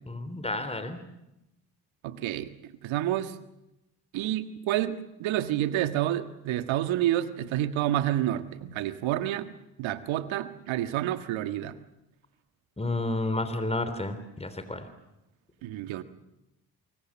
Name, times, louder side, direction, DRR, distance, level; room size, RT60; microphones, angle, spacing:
voice 1, 0.1-1.0 12.8-14.9, left 2 dB, 15° left, 10 dB, 3.5 m, -31 dB
voice 2, 2.0-3.3 4.1-9.5 9.8-11.8 15.6-16.0, right 13 dB, 70° right, 10 dB, 1.7 m, -29 dB
24.5 x 24.5 x 7.5 m, 0.89 s
hypercardioid pair, 55°, 48 cm